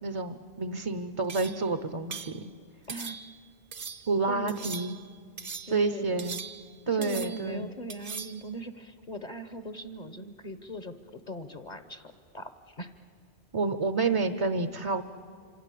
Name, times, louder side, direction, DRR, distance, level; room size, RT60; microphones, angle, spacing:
voice 1, 0.0-2.4 4.1-5.0 5.7-6.4 6.9-7.7 13.5-15.0, right 3 dB, 35° right, 10 dB, 0.8 m, -29 dB
sound 1, 1.3-1.7 2.1-2.4 2.9-3.4 3.7-4.1 4.5-5.1 5.4-5.8 6.2-6.8 7.0-7.5 7.9-8.4, right 5 dB, 55° right, 1.1 m, -40 dB
voice 2, 4.3-4.7 5.6-6.2 6.9-12.5 12.8-12.9, equal, 45° left, 10 dB, 1.2 m, -40 dB
27.0 x 26.0 x 8.4 m, 2.1 s
omnidirectional pair, 1.1 m